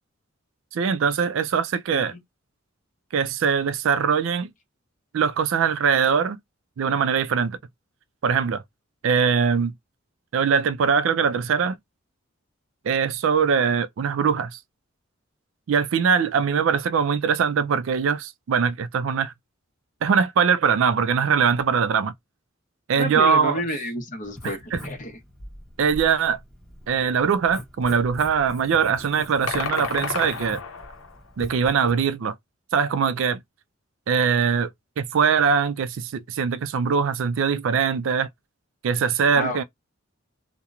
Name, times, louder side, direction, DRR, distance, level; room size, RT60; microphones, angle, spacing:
voice 1, 0.7-2.1 3.1-4.5 5.1-6.4 6.8-7.6 8.2-8.6 9.0-9.7 10.3-11.8 12.8-14.6 15.7-19.3 20.0-22.1 22.9-23.5 24.7-24.8 25.8-26.4 26.9-30.6 31.4-32.3 32.7-33.4 34.1-34.7 35.0-38.3 38.8-39.6, right 6 dB, 70° right, 0.3 m, -22 dB
voice 2, 23.0-25.1 39.3-39.6, left 1 dB, 40° left, 0.7 m, -30 dB
Writing, 24.2-31.9, left 1 dB, 5° left, 1.0 m, -42 dB
sound 1, 29.5-31.2, left 5 dB, 80° left, 0.6 m, -30 dB
2.8 x 2.1 x 2.4 m
head